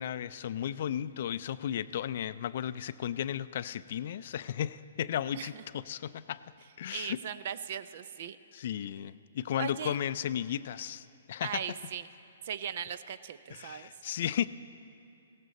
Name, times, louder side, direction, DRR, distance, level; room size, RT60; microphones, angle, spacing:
voice 1, 0.0-6.4 6.8-7.2 8.5-11.6 13.5-14.5, left 10 dB, 55° left, 15 dB, 0.4 m, -34 dB
voice 2, 6.9-8.4 9.0-9.1 9.6-10.0 11.4-12.1 12.4-13.9, right 8 dB, 55° right, 15 dB, 0.5 m, -38 dB
17.0 x 13.5 x 4.1 m, 2.8 s
hypercardioid pair, 145°, 0 cm